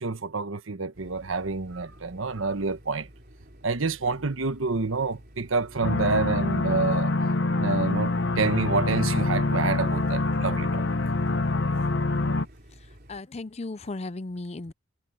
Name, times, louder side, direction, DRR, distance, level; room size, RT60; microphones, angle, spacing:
voice 1, 0.0-3.1 3.6-7.1 7.6-10.8, right 4 dB, 80° right, 1.2 m, -28 dB
sound 1, 0.9-13.2, equal, 50° right, 4.3 m, -51 dB
sound 2, 5.8-12.5, left 2 dB, 60° left, 0.8 m, -25 dB
voice 2, 13.1-14.7, left 2 dB, 30° left, 0.5 m, -35 dB
head